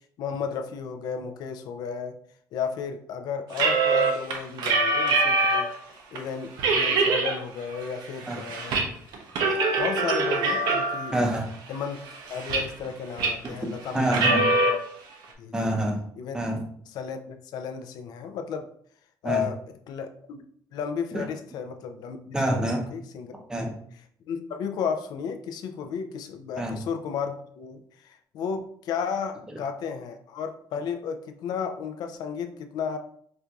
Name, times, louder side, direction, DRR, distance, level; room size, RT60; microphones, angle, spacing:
voice 1, 0.2-2.2 2.5-5.7 6.1-8.7 9.8-11.1 11.7-12.0 12.3-14.2 14.5-14.8 15.4-15.5 16.2-16.4 16.9-18.6 19.2-19.6 19.9-20.4 20.7-23.3 24.3-33.0, left 6 dB, 65° left, 6 dB, 0.4 m, -33 dB
sound 1, 3.5-5.8 6.2-6.3 6.6-7.4 7.7-8.9 9.1-11.2 11.7-12.9 13.2-13.5 14.0-14.7, right 3 dB, 70° right, 0.6 m, -23 dB
voice 2, 11.1-11.5 13.9-14.5 15.5-16.0 16.3-16.6 19.2-19.5 21.1-21.2 22.3-22.8 23.5-23.8 26.6-26.8 29.5-29.6, right 1 dB, 10° right, 1 dB, 0.6 m, -26 dB
4.3 x 2.5 x 2.3 m, 0.63 s
cardioid pair, 140°, 7 cm